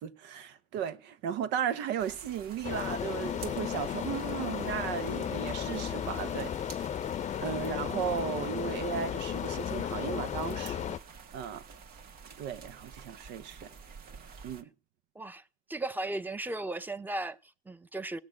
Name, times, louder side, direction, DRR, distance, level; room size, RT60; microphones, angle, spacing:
voice 1, 0.0-6.7 7.4-11.0 11.3-11.6 12.4-13.7 14.4-14.7, right 8 dB, 85° right, 1.2 m, -35 dB
sound 1, 2.0-14.6, right 5 dB, 60° right, 1.6 m, -50 dB
sound 2, 2.6-11.0, left 9 dB, 40° left, 0.6 m, -34 dB
voice 2, 15.7-18.2, right 2 dB, 10° right, 0.9 m, -36 dB
17.5 x 6.1 x 8.8 m
cardioid pair, 100°, 18 cm